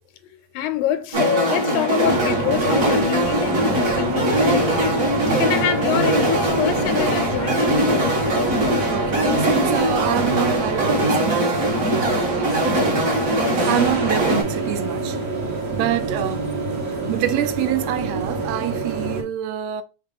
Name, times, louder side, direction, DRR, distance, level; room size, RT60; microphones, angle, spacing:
voice 1, 0.6-5.0 5.3-8.2, left 10 dB, 90° left, 2.0 m, -25 dB
sound 1, 1.1-14.4, right 1 dB, 40° right, 1.3 m, -21 dB
sound 2, 2.0-19.2, right 3 dB, 65° right, 0.8 m, -27 dB
voice 2, 8.9-13.2 13.7-15.2 15.7-16.5 17.1-19.8, right 12 dB, 85° right, 1.4 m, -26 dB
5.6 x 2.3 x 3.6 m
omnidirectional pair, 3.4 m